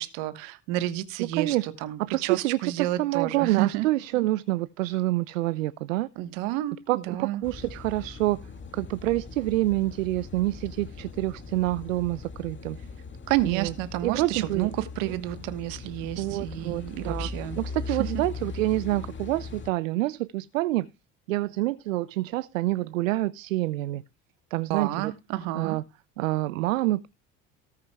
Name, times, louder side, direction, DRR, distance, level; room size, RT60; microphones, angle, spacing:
voice 1, 0.0-1.6 1.8-3.9 6.2-7.4 13.3-17.6 17.9-18.2 24.7-25.8, right 15 dB, 70° right, 1.4 m, -30 dB
voice 2, 1.4-1.7 2.1-6.1 6.9-8.4 8.7-12.8 13.5-13.7 14.0-14.7 15.1-15.2 16.2-17.3 17.6-20.9 21.3-24.0 24.5-25.1 25.5-25.8 26.2-27.1, right 17 dB, 85° right, 0.5 m, -27 dB
Car passing by / Idling / Accelerating revving vroom, 7.4-19.7, left 4 dB, 30° left, 2.2 m, -39 dB
19.0 x 6.6 x 2.3 m
hypercardioid pair, 65°, 38 cm